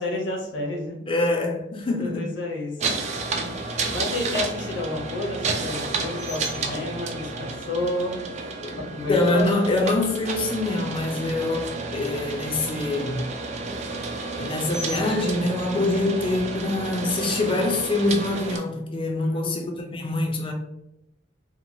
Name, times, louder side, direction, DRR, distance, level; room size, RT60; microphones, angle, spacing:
voice 1, 0.0-1.0 1.9-2.7 3.9-8.3 8.8-9.5 19.1-20.0, left 2 dB, 70° left, 0.8 m, -30 dB
voice 2, 1.1-2.3 3.4-3.6 8.6-8.7 9.1-13.3 14.4-20.5, left 2 dB, 30° left, 0.4 m, -25 dB
sound 1, 2.8-18.6, right 3 dB, 40° right, 0.4 m, -31 dB
2.9 x 2.2 x 2.6 m
head